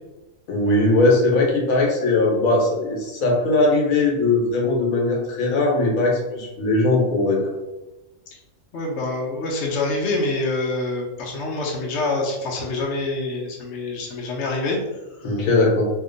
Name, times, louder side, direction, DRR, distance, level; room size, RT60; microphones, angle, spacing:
voice 1, 0.5-7.5 15.2-15.9, left 2 dB, 80° left, -1 dB, 1.2 m, -19 dB
voice 2, 8.7-14.8 15.2-15.4, left 2 dB, 65° left, -2 dB, 0.9 m, -26 dB
2.8 x 2.1 x 3.8 m, 1.1 s
omnidirectional pair, 1.4 m